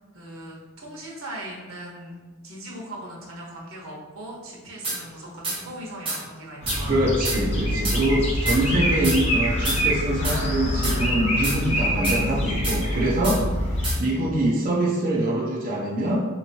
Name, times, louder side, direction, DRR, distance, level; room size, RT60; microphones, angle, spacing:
voice 1, 0.0-2.2 2.4-7.1 8.2-8.7 14.1-14.7, right 1 dB, 80° right, -3 dB, 1.1 m, -40 dB
sound 1, 4.8-5.0 5.4-5.6 6.1-6.2 6.7-6.8 7.2-7.4 7.8-8.0 8.5-8.6 9.0-9.2 9.7-9.8 10.2-10.4 10.8-11.0 11.4-11.6 12.0-12.2 12.6-12.8 13.2-13.4 13.8-14.0, right 2 dB, 25° right, 1.1 m, -28 dB
sound 2, 6.6-13.9, equal, 30° left, 0.7 m, -25 dB
voice 2, 6.9-16.3, right 1 dB, 40° right, -4 dB, 0.5 m, -24 dB
4.3 x 2.9 x 2.7 m, 1.3 s
head